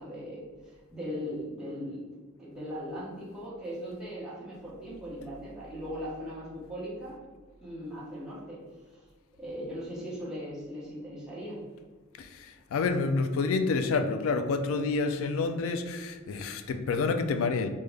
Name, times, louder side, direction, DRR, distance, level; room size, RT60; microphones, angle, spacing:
voice 1, 0.0-2.0 2.4-7.2 7.6-8.6 8.9-9.0 9.4-11.6, equal, 5° right, -9 dB, 1.0 m, -39 dB
voice 2, 12.2-17.7, left 4 dB, 70° left, 9 dB, 0.3 m, -28 dB
3.5 x 2.1 x 3.3 m, 1.4 s
head